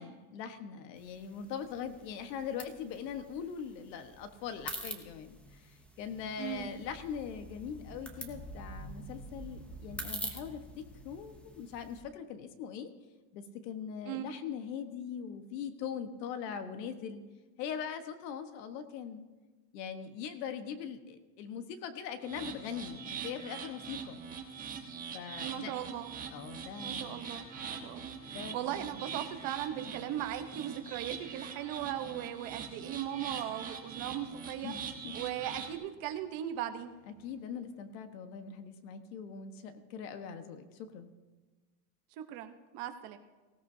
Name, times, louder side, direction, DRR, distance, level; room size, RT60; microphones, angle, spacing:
voice 1, 0.0-12.9 13.3-17.2 17.6-19.2 19.7-24.2 25.1-25.7 26.3-27.4 28.3-29.0 34.6-35.1 37.1-41.1, left 7 dB, 85° left, 8 dB, 1.4 m, -41 dB
sound 1, 1.0-12.0, equal, 5° left, 0.6 m, -46 dB
voice 2, 6.4-6.7 14.1-14.3 25.4-26.1 26.8-34.7 35.1-36.9 42.2-43.2, right 11 dB, 45° right, 7 dB, 1.0 m, -38 dB
sound 2, 22.2-35.8, right 6 dB, 15° right, 1.2 m, -43 dB
sound 3, 26.6-38.3, left 1 dB, 35° left, 3.0 m, -63 dB
18.5 x 16.5 x 2.7 m, 1.3 s
supercardioid pair, 160°, 48 cm